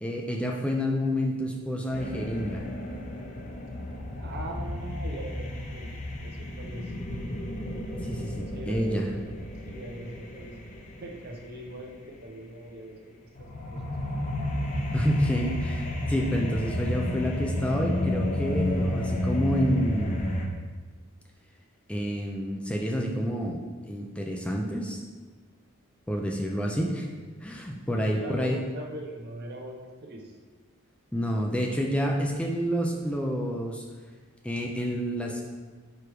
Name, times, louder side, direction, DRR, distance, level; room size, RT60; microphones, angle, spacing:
voice 1, 0.0-2.6 8.0-9.1 14.9-20.2 21.9-25.0 26.1-27.1 27.4-28.6 31.1-33.8 34.4-35.4, equal, 5° left, 0 dB, 0.5 m, -28 dB
sound 1, 1.9-11.8 13.4-20.5, left 1 dB, 35° left, 0.8 m, -32 dB
voice 2, 4.2-6.9 8.5-9.0 9.6-10.6 11.0-14.1 27.9-30.4, right 1 dB, 50° right, 0 dB, 1.0 m, -41 dB
5.0 x 4.8 x 4.7 m, 1.4 s
head